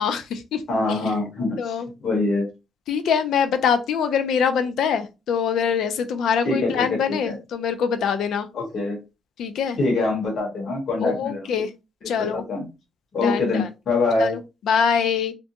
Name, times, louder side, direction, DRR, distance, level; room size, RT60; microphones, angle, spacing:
voice 1, 0.0-0.6 0.9-1.1 1.6-1.9 2.9-8.5 9.4-9.8 11.0-11.7 12.1-12.4 13.2-13.7 14.2-15.3, left 7 dB, 70° left, 9 dB, 0.4 m, -24 dB
voice 2, 0.7-1.7 2.0-2.4 6.4-7.3 8.5-9.0 9.8-11.5 12.0-12.7 13.1-14.3, left 3 dB, 45° left, -1 dB, 1.2 m, -24 dB
2.6 x 2.2 x 2.7 m, 0.27 s
cardioid pair, 170°, 0 cm